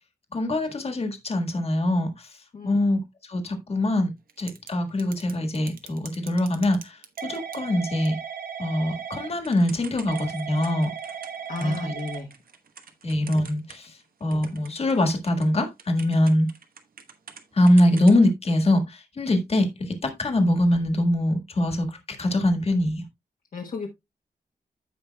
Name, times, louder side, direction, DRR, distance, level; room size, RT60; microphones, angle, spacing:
voice 1, 0.3-2.3 2.6-3.0 3.3-4.1 4.4-8.2 8.6-10.9 11.6-11.9 13.0-16.5 17.5-23.0, left 1 dB, 40° left, 1.6 m, -23 dB
Typing / Telephone, 4.3-4.7 5.0-14.0 14.3-17.4 17.7-18.2, right 7 dB, 65° right, 1.1 m, -37 dB
voice 2, 11.5-12.3 23.5-23.9, left 4 dB, 60° left, 1.2 m, -34 dB
15.0 x 5.2 x 2.2 m
wide cardioid pair, 180°, 16 cm